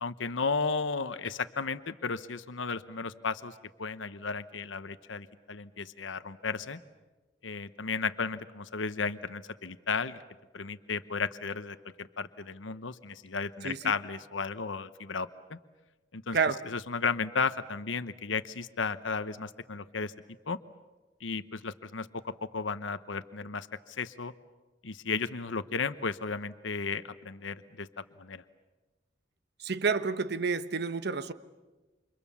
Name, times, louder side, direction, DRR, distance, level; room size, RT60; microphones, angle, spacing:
voice 1, 0.0-3.5 3.8-6.8 7.4-10.2 10.5-15.6 16.1-16.4 16.7-20.1 20.5-20.6 21.2-24.3 24.8-27.9 28.2-28.4, left 4 dB, 90° left, 1.0 m, -34 dB
voice 2, 13.6-13.9 16.3-16.6 29.6-31.3, right 5 dB, 60° right, 1.2 m, -29 dB
29.5 x 27.0 x 7.1 m
head